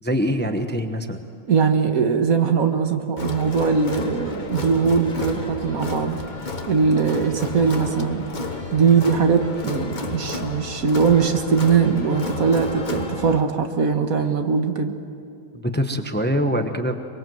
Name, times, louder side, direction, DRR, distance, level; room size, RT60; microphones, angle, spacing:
voice 1, 0.0-1.2 15.5-17.0, equal, 10° left, 6 dB, 0.9 m, -24 dB
voice 2, 1.5-6.2 6.7-8.3 8.7-15.0, right 5 dB, 70° right, 6 dB, 1.8 m, -20 dB
Crowd, 3.2-13.4, left 2 dB, 30° left, 1.4 m, -32 dB
24.0 x 22.5 x 7.8 m, 2.5 s
omnidirectional pair, 1.6 m